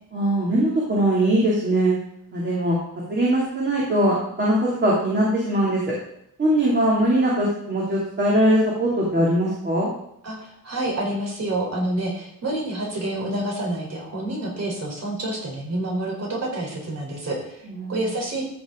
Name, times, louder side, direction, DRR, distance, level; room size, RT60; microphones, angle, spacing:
voice 1, 0.1-1.9 2.3-2.8 3.1-5.8 6.4-9.9 17.7-18.1, right 1 dB, 30° right, -5 dB, 2.7 m, -21 dB
voice 2, 10.2-17.6 17.9-18.5, right 1 dB, 50° right, -1 dB, 3.8 m, -28 dB
13.5 x 7.3 x 3.8 m, 0.75 s
wide cardioid pair, 140°, 33 cm